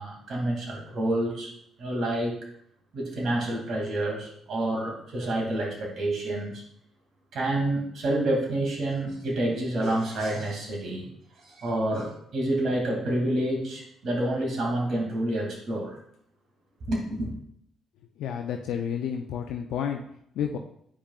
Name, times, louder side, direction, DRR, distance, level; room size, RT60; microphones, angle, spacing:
voice 1, 0.0-1.5 1.8-2.4 2.9-6.6 7.3-11.1 11.5-16.0 16.9-17.3, right 1 dB, 60° right, -1 dB, 2.5 m, -28 dB
voice 2, 18.2-20.0 20.4-20.6, left 8 dB, 75° left, 3 dB, 0.5 m, -30 dB
8.6 x 5.1 x 2.4 m, 0.71 s
hypercardioid pair, 55°, 0 cm